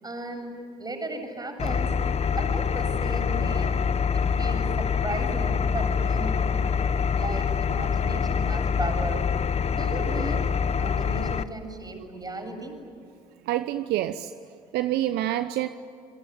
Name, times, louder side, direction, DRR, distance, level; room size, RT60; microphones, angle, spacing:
voice 1, 0.0-1.9 2.3-3.7 4.1-6.7 7.1-9.2 9.7-12.8, right 2 dB, 20° right, 4 dB, 7.7 m, -36 dB
Engine, 1.6-11.4, left 6 dB, 35° left, 1.3 m, -25 dB
voice 2, 13.5-14.3 14.7-15.7, right 14 dB, 65° right, 11 dB, 1.0 m, -27 dB
28.5 x 24.0 x 8.7 m, 2.5 s
hypercardioid pair, 55°, 18 cm